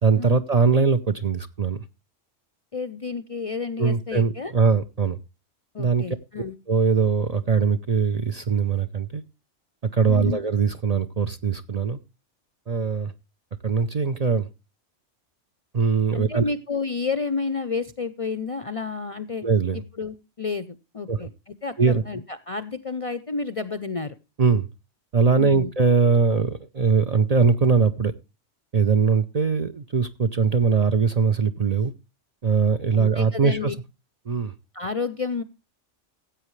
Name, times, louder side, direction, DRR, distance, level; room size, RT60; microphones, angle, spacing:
voice 1, 0.0-1.8 3.8-5.2 5.8-6.0 6.7-9.2 9.9-12.0 12.7-13.1 13.6-14.5 15.7-16.4 19.4-19.8 21.1-21.3 21.8-22.0 24.4-24.7 25.1-28.1 28.7-31.9 32.4-33.7 34.3-34.5, right 5 dB, 45° right, 0.6 m, -21 dB
voice 2, 2.7-4.5 5.7-6.6 10.1-10.4 16.1-19.4 19.7-24.1 25.4-25.7 32.9-33.7 34.7-35.4, left 4 dB, 40° left, 0.5 m, -30 dB
15.5 x 8.2 x 3.2 m
omnidirectional pair, 1.2 m